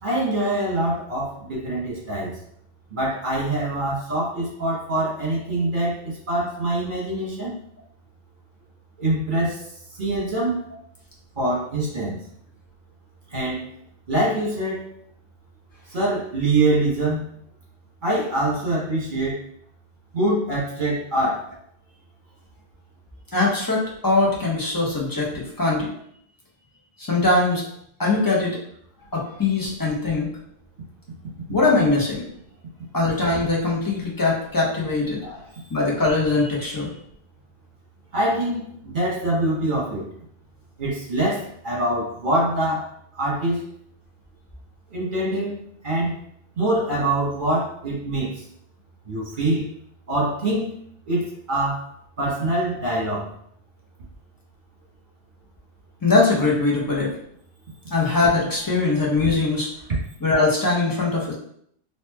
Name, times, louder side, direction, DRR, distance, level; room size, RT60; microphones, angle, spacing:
voice 1, 0.0-2.4 2.9-7.6 9.0-9.6 10.0-10.6 11.4-12.2 13.3-13.6 14.1-14.8 15.9-17.3 18.0-19.4 20.1-21.5 35.2-35.5 38.1-40.1 40.8-42.9 43.1-43.6 44.9-45.6 45.8-46.2 46.6-48.4 49.0-49.7 50.1-50.7 51.0-51.9 52.2-53.3, right 1 dB, 45° right, -5 dB, 1.4 m, -24 dB
voice 2, 23.3-25.9 27.0-27.6 28.0-28.6 29.1-30.3 31.5-32.3 32.9-35.2 35.7-36.9 56.0-57.1 57.9-59.7 60.2-61.3, left 3 dB, 20° left, -4 dB, 1.1 m, -21 dB
4.2 x 2.9 x 2.9 m, 0.68 s
omnidirectional pair, 1.2 m